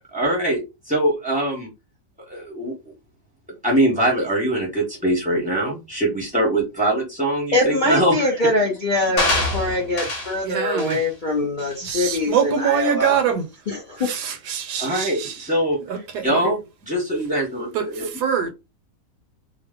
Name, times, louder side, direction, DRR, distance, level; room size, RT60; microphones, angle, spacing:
voice 1, 0.1-1.7 2.3-2.7 3.6-8.4 14.8-18.1, right 1 dB, 10° right, 0.5 m, -23 dB
voice 2, 7.5-13.2 13.7-14.0, left 1 dB, 70° left, 0.4 m, -23 dB
sound 1, 9.2-10.4 10.8-11.1 11.6-11.7, left 2 dB, 55° left, 1.0 m, -24 dB
voice 3, 10.4-11.0 11.8-13.4 14.1-15.3 15.9-16.2 17.7-18.5, right 7 dB, 75° right, 1.1 m, -24 dB
2.9 x 2.0 x 3.5 m
omnidirectional pair, 1.9 m